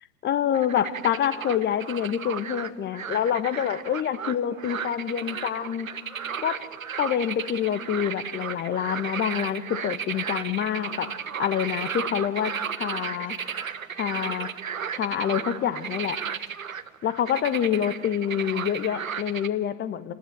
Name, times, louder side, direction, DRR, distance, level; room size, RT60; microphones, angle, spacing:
voice 1, 0.2-5.9 6.4-6.6 7.0-11.1 11.4-13.4 14.0-14.5 14.9-16.2 17.0-20.1, left 9 dB, 25° left, 14 dB, 1.4 m, -27 dB
sound 1, 0.5-19.5, right 7 dB, 80° right, 1.1 m, -34 dB
29.0 x 20.0 x 7.6 m, 1.3 s
figure-of-eight pair, 85°, 40 cm